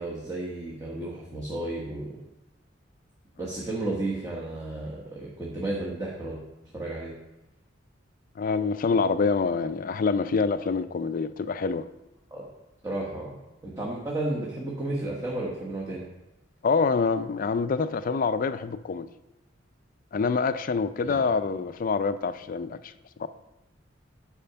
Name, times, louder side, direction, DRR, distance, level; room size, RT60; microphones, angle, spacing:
voice 1, 0.0-2.2 3.4-6.4 6.7-7.1 12.3-12.5 12.8-13.3 13.6-16.1 21.0-21.2, right 2 dB, 20° right, -5 dB, 1.2 m, -33 dB
voice 2, 8.4-11.9 16.6-19.1 20.1-22.9 23.2-23.3, left 4 dB, 45° left, 12 dB, 0.4 m, -26 dB
8.7 x 5.0 x 5.6 m, 0.95 s
head